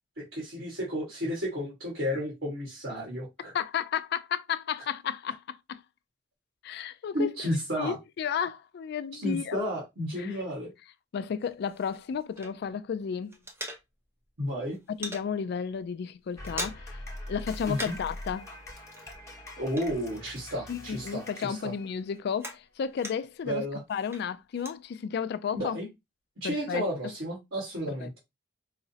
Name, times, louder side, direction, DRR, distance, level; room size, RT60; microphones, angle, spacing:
voice 1, 0.2-3.5 7.1-8.0 9.1-10.7 14.4-14.8 17.7-17.9 19.6-21.7 23.5-23.8 25.5-25.9 26.4-28.2, equal, 80° right, 1.5 m, -32 dB
voice 2, 3.5-5.8 6.6-7.3 7.8-9.6 10.2-10.4 11.1-13.4 15.0-17.0 17.3-18.5 20.7-23.6 23.9-25.8 26.4-26.8 28.0-28.1, left 7 dB, 60° left, 0.3 m, -33 dB
sound 1, 11.4-12.9 13.1-14.3 14.5-15.3 15.7-15.9 16.2-17.0 17.3-18.2 18.4-20.8 21.1-23.4 23.9-24.8, right 1 dB, 15° right, 0.6 m, -42 dB
sound 2, 16.4-22.3, left 1 dB, 15° left, 0.9 m, -43 dB
4.8 x 2.0 x 2.7 m
head